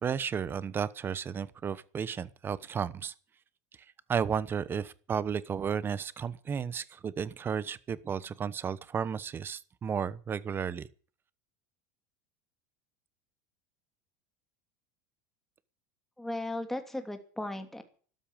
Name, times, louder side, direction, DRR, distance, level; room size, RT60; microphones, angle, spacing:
voice 1, 0.0-3.1 4.1-10.9, right 7 dB, 25° right, 1.0 m, -33 dB
voice 2, 16.2-17.8, left 1 dB, 5° left, 2.7 m, -36 dB
13.0 x 12.5 x 7.4 m
supercardioid pair, 130°, 9 cm